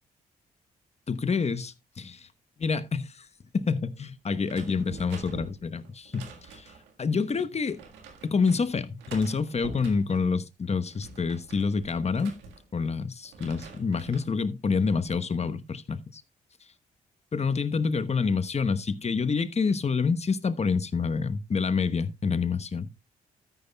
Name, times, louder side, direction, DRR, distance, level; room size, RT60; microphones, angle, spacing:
voice 1, 1.1-2.3 2.6-3.3 3.5-6.7 7.0-7.8 8.2-12.4 12.7-16.2 17.3-22.9, left 5 dB, 40° left, 1.1 m, -27 dB
sound 1, 4.4-6.9 7.7-8.6 9.0-10.3 10.7-12.9 13.2-14.3 14.8-15.2, right 4 dB, 85° right, 1.7 m, -46 dB
13.0 x 9.9 x 2.3 m
supercardioid pair, 50°, 18 cm